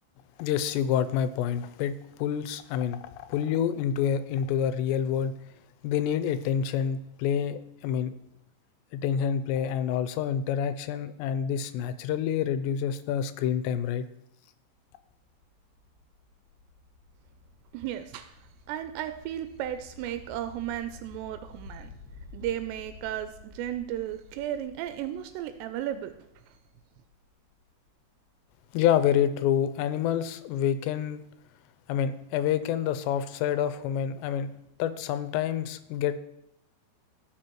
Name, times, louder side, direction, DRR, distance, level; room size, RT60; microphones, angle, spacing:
voice 1, 0.4-5.3 5.8-8.1 8.9-14.1 28.7-31.2 31.9-34.5 34.8-36.2, left 9 dB, 85° left, 11 dB, 2.8 m, -27 dB
sound 1, 14.6-28.3, left 3 dB, 60° left, 2.3 m, -52 dB
voice 2, 17.7-21.9 22.3-26.1 26.5-26.6, right 11 dB, 85° right, 9 dB, 2.7 m, -34 dB
17.0 x 6.3 x 3.0 m, 0.81 s
omnidirectional pair, 5.0 m